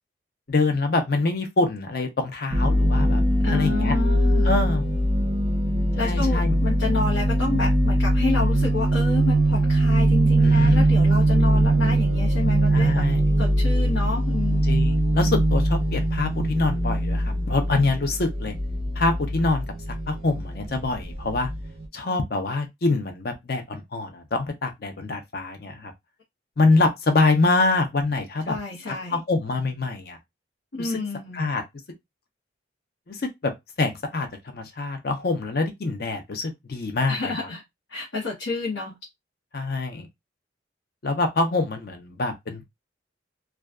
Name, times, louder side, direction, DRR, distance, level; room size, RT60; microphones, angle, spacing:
voice 1, 0.5-3.2 3.5-4.0 4.4-4.8 6.0-6.6 10.4-10.9 12.7-13.2 14.6-18.5 19.0-19.6 20.1-21.5 21.9-25.9 26.6-28.6 28.9-30.2 30.8-30.9 31.3-31.6 33.1-33.5 33.8-37.5 39.5-40.1 41.0-42.6, left 3 dB, 55° left, 0.6 m, -25 dB
sound 1, 2.5-21.9, right 1 dB, 30° right, 0.5 m, -21 dB
voice 2, 3.4-4.5 6.0-12.9 13.4-14.6 28.5-29.2 30.7-31.4 37.1-37.6 37.9-39.0, left 3 dB, 85° left, 0.9 m, -29 dB
2.5 x 2.3 x 2.2 m
head